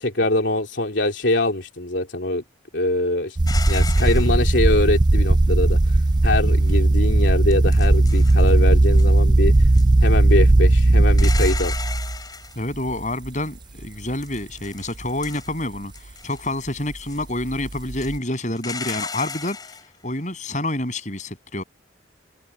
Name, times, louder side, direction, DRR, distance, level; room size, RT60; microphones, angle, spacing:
voice 1, 0.0-2.4 2.7-3.4 3.7-6.0 6.2-9.7 10.0-11.7, left 2 dB, 75° left, 3.0 m, -23 dB
sound 1, 3.4-12.2 12.9-13.3 13.8-13.9 17.5-18.2, right 2 dB, 25° right, 0.4 m, -17 dB
sound 2, 3.5-4.5 6.6-6.8 7.5-8.5 8.9-9.1 9.6-10.1 11.1-12.6 14.2-15.6 15.9-16.5 17.1-17.2 17.7-19.9, left 4 dB, 20° left, 5.2 m, -34 dB
voice 2, 12.6-19.7 20.0-21.6, left 1 dB, 40° left, 7.9 m, -28 dB
head